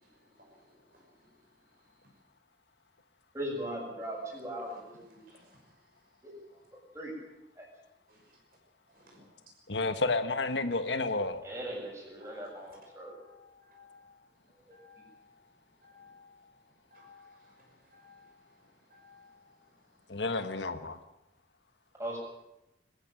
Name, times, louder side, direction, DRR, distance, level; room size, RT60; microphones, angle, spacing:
voice 1, 3.3-5.2 6.2-6.3 6.9-7.2 7.6-7.7 11.4-13.1 22.0-22.2, right 1 dB, 15° right, 7.5 m, -39 dB
voice 2, 9.7-11.4 20.1-21.0, left 3 dB, 85° left, 1.4 m, -30 dB
voice 3, 12.9-13.3 13.6-14.0 14.7-15.0 15.8-16.2 16.9-17.2 17.9-18.2 18.9-19.2, left 5 dB, 55° right, 6.1 m, -57 dB
22.0 x 15.0 x 9.1 m
head